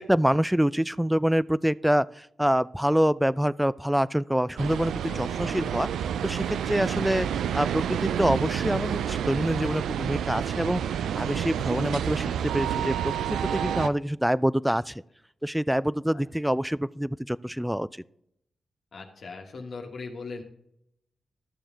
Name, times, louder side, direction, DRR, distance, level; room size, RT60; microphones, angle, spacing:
voice 1, 0.0-5.9 6.2-10.8 11.2-14.9 15.4-18.0, equal, 5° right, 20 dB, 0.4 m, -26 dB
sound 1, 4.6-13.9, right 9 dB, 85° right, 0.4 m, -29 dB
voice 2, 5.0-5.5 16.1-16.2 18.9-20.4, left 4 dB, 65° left, 2 dB, 1.3 m, -39 dB
13.0 x 6.9 x 3.8 m, 0.74 s
supercardioid pair, 50°, 0 cm